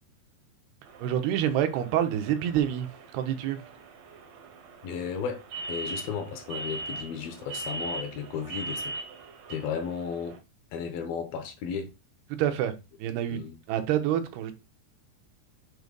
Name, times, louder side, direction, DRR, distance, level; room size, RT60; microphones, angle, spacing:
sound 1, 0.9-10.4, right 3 dB, 70° right, 1.7 m, -40 dB
voice 1, 1.0-2.9 3.1-3.6 12.3-12.7 13.0-13.4 13.7-14.5, right 10 dB, 85° right, 2.9 m, -27 dB
voice 2, 4.8-8.9 9.5-10.4 10.7-11.9 13.3-13.6, left 6 dB, 75° left, 2.7 m, -34 dB
7.9 x 2.8 x 5.2 m
omnidirectional pair, 4.5 m